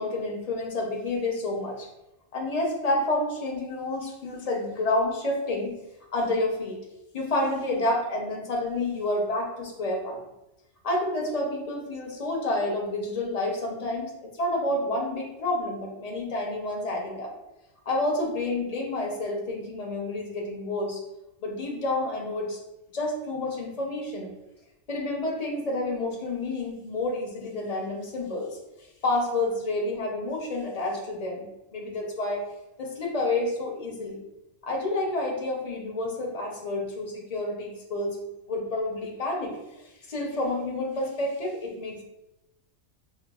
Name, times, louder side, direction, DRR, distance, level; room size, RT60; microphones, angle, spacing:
voice 1, 0.0-1.9 2.3-5.7 6.1-6.8 7.1-10.2 10.8-17.3 17.9-21.0 21.4-22.6 22.9-24.3 24.9-28.6 29.0-32.5 32.8-34.2 34.6-38.2 38.5-42.0, left 2 dB, 50° left, -1 dB, 0.4 m, -29 dB
5.5 x 2.0 x 2.3 m, 0.93 s
omnidirectional pair, 1.4 m